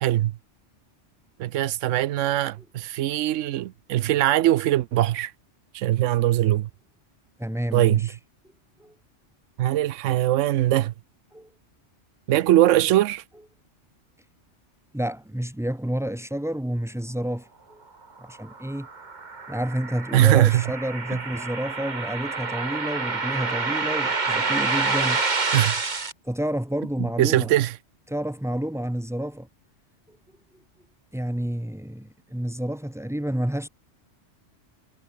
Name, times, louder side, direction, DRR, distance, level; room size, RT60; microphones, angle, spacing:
voice 1, 0.0-0.3 1.4-5.3 5.7-6.7 7.7-8.1 9.6-10.9 12.3-13.2 20.1-20.6 25.5-25.8 27.2-27.7, right 14 dB, 90° right, 0.9 m, -21 dB
voice 2, 7.4-8.2 8.8-8.9 11.3-11.5 14.9-17.8 18.2-18.9 19.5-25.5 26.2-27.5 28.1-29.5 30.1-30.2 31.1-33.7, right 1 dB, 5° right, 0.5 m, -30 dB
sound 1, 18.3-26.1, right 4 dB, 40° right, 1.7 m, -28 dB
omnidirectional pair, 1.2 m